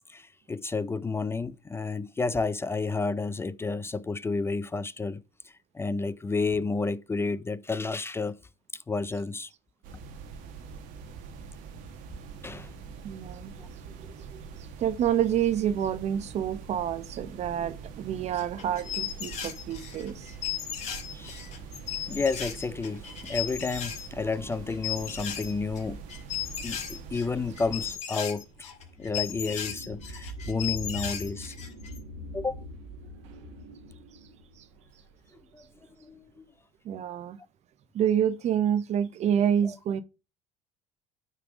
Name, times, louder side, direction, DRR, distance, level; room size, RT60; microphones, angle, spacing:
voice 1, 0.1-5.2 5.7-8.4 8.7-9.5 12.4-12.7 13.6-13.7 21.1-21.4 22.1-26.0 26.6-28.7 29.0-31.5 32.3-32.6 35.5-35.6 36.0-36.5 39.6-39.7, left 4 dB, 15° left, 0.4 m, -31 dB
sound 1, 9.8-28.0, right 5 dB, 75° right, 1.2 m, -44 dB
voice 2, 13.0-13.5 14.0-14.4 14.8-20.3 36.8-37.4 37.9-40.0, right 9 dB, 50° right, 0.7 m, -28 dB
sound 2, 18.3-24.1 24.3-25.8 26.1-32.0, left 10 dB, 55° left, 2.2 m, -36 dB
sound 3, 26.9-35.9, equal, 90° right, 1.5 m, -43 dB
9.2 x 3.4 x 5.0 m
supercardioid pair, 80°, 14 cm